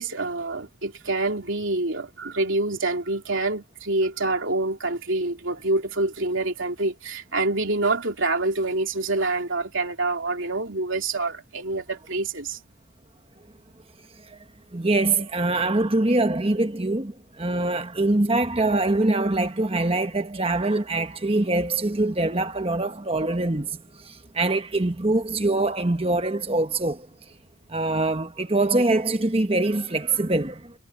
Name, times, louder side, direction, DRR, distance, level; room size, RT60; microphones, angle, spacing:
voice 1, 0.0-12.6, right 2 dB, 60° right, 3.2 m, -26 dB
voice 2, 14.7-27.1 27.7-30.7, right 2 dB, 25° right, 1.3 m, -24 dB
head